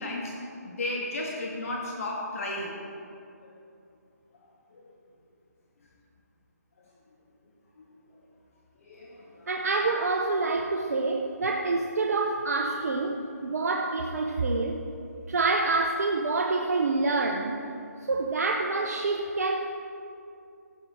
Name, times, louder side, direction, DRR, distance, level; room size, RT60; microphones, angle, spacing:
voice 1, 0.0-2.7 4.7-4.8 7.8-7.9 8.8-9.5, left 2 dB, 55° left, -2 dB, 1.8 m, -34 dB
voice 2, 9.5-14.8 15.3-17.6 18.1-19.7, right 3 dB, 65° right, 2 dB, 0.8 m, -27 dB
15.5 x 9.0 x 3.8 m, 2.6 s
figure-of-eight pair, 150°, 9 cm